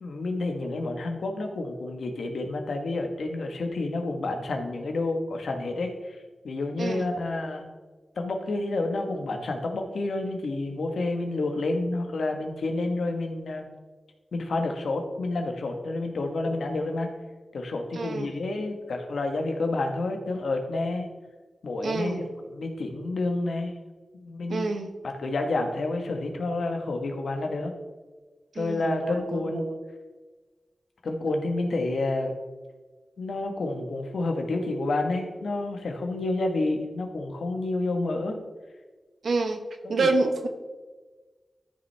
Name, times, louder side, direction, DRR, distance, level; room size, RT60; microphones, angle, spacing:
voice 1, 0.0-6.2 6.4-7.6 8.2-13.7 14.3-17.1 17.5-21.1 21.6-22.2 22.5-23.8 24.2-24.7 25.0-27.7 28.5-29.6 31.0-32.3 33.2-38.4 40.0-40.3, left 2 dB, 85° left, 4 dB, 1.2 m, -29 dB
voice 2, 6.8-7.1 17.9-18.3 21.8-22.3 24.5-24.9 28.6-29.8 39.2-39.6 39.9-40.5, right 3 dB, 80° right, 6 dB, 0.9 m, -28 dB
13.0 x 5.4 x 3.3 m, 1.3 s
cardioid pair, 65°, 0 cm